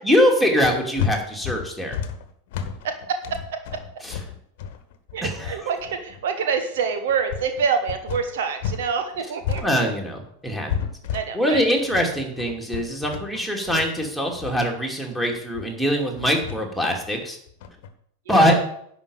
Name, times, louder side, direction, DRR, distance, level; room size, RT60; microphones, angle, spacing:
voice 1, 0.0-2.0 4.0-4.2 5.2-5.6 9.6-10.7 11.3-17.4 18.3-18.6, equal, ahead, 1 dB, 2.7 m, -22 dB
sound 1, 0.6-8.9 9.1-17.9, left 7 dB, 50° left, 1.3 m, -32 dB
voice 2, 2.8-3.4 5.1-9.9 11.1-11.6 18.3-18.6, right 6 dB, 55° right, 7 dB, 1.1 m, -26 dB
11.0 x 5.2 x 8.6 m, 0.70 s
figure-of-eight pair, 90°, 0 cm